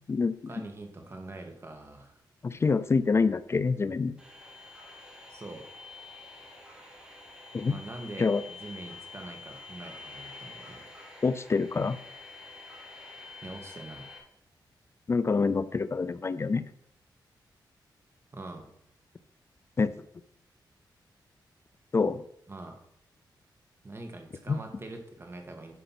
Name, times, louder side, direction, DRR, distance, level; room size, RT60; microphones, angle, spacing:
voice 1, 0.5-2.2 5.3-5.7 7.7-8.3 8.6-10.9 13.4-14.1 18.3-18.7 22.5-22.8 23.8-25.7, right 2 dB, 30° right, 4 dB, 1.9 m, -43 dB
voice 2, 2.4-4.1 7.5-7.8 8.2-8.4 11.2-12.0 15.1-16.6 19.8-19.9 21.9-22.2 24.5-24.6, left 4 dB, 35° left, 14 dB, 0.4 m, -26 dB
sound 1, 4.2-14.2, left 3 dB, 10° right, 3.0 m, -47 dB
11.0 x 5.1 x 5.9 m, 0.74 s
wide cardioid pair, 105°, 8 cm